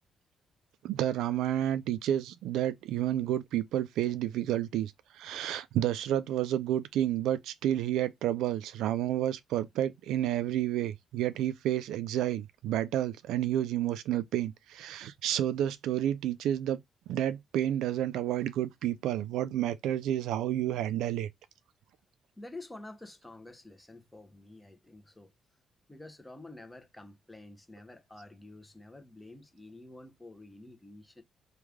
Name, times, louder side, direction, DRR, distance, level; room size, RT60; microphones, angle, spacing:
voice 1, 0.8-16.8 17.1-21.3, right 12 dB, 85° right, 0.3 m, -30 dB
voice 2, 22.4-25.3 25.9-31.2, left 2 dB, 10° left, 0.8 m, -49 dB
3.2 x 2.3 x 3.5 m
cardioid pair, 90°, 0 cm